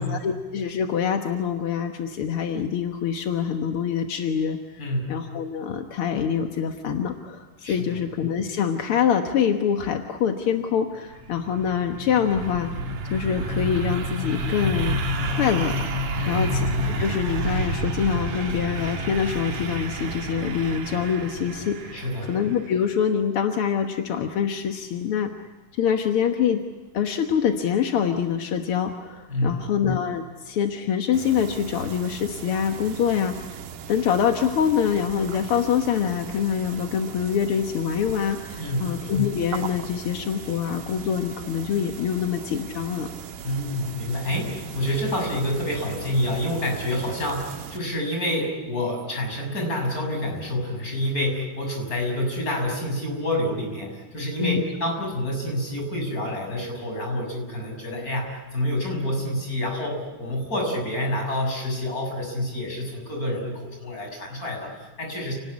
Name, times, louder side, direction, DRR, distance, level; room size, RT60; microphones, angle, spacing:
voice 1, 0.0-12.7 13.0-15.0 15.3-15.7 16.3-16.7 17.0-25.3 25.7-26.6 26.9-33.6 33.9-43.1 54.4-54.6, left 8 dB, 55° left, 5 dB, 1.6 m, -25 dB
voice 2, 4.8-5.2 7.6-8.0 16.2-16.6 21.9-22.4 29.3-29.7 38.6-39.0 43.4-65.3, left 1 dB, 25° left, 1 dB, 7.1 m, -28 dB
sound 1, 11.1-22.8, right 1 dB, 55° right, 3.1 m, -29 dB
sound 2, 31.1-47.8, right 8 dB, 75° right, 2.9 m, -39 dB
29.0 x 19.5 x 9.8 m, 1.2 s
omnidirectional pair, 4.0 m